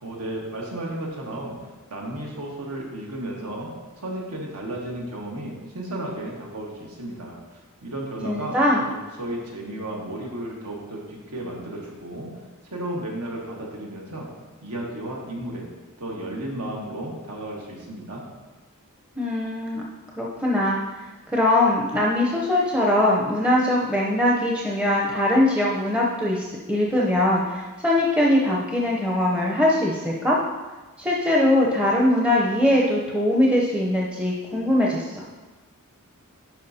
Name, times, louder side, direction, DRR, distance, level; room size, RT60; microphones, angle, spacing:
voice 1, 0.0-1.6 1.9-3.7 4.0-8.6 8.9-12.3 12.7-14.3 14.6-15.7 16.0-18.2, right 1 dB, 80° right, -2 dB, 1.4 m, -33 dB
voice 2, 8.2-8.8 19.2-19.8 20.2-20.8 21.3-30.4 31.0-35.1, left 1 dB, 5° right, -4 dB, 0.6 m, -21 dB
10.5 x 4.6 x 2.7 m, 1.2 s
head